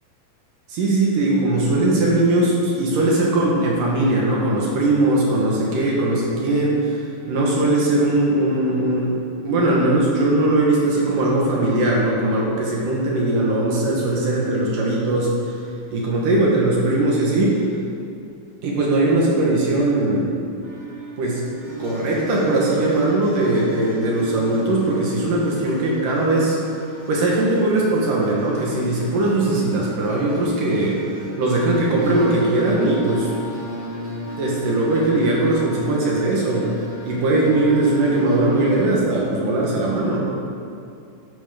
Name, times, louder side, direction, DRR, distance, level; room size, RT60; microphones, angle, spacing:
voice 1, 0.7-7.0 7.3-9.2 9.4-15.3 15.9-17.6 18.6-20.3 21.2-21.4 21.8-26.6 27.1-31.0 31.4-33.3 34.4-36.7 37.1-40.3, right 2 dB, 65° right, -4 dB, 3.0 m, -20 dB
sound 1, 20.6-38.8, equal, 40° right, 3.5 m, -33 dB
11.5 x 11.5 x 3.8 m, 2.5 s
omnidirectional pair, 4.4 m